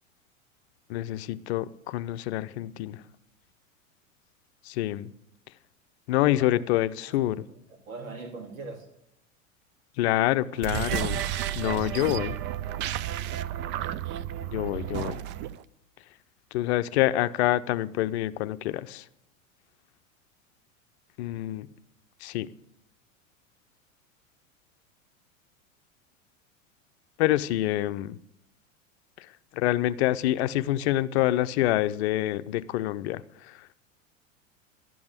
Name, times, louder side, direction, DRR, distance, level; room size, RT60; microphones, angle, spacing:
voice 1, 0.9-3.0 4.7-5.1 6.1-7.5 10.0-11.2 11.5-12.4 14.5-15.2 16.5-19.0 21.2-21.7 22.2-22.5 27.2-28.2 29.2-29.3 29.5-33.6, left 14 dB, 55° left, 0.7 m, -26 dB
voice 2, 6.3-6.6 7.0-7.2 7.5-8.9, right 3 dB, 80° right, 2.7 m, -41 dB
sound 1, 10.5-15.6, right 12 dB, 30° right, 0.4 m, -32 dB
12.5 x 8.7 x 8.0 m
figure-of-eight pair, 90°, 40 cm